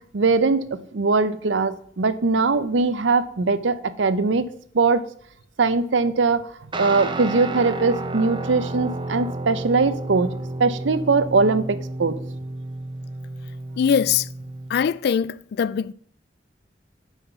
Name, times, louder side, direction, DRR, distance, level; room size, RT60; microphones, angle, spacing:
voice 1, 0.1-4.5 4.7-5.0 5.6-6.4 6.8-10.3 10.6-12.2, right 4 dB, 90° right, 0.7 m, -21 dB
Guitar, 6.7-14.9, right 2 dB, 25° right, 0.7 m, -32 dB
voice 2, 13.8-14.3 14.7-15.9, left 7 dB, 60° left, 0.3 m, -22 dB
7.1 x 5.7 x 5.9 m
head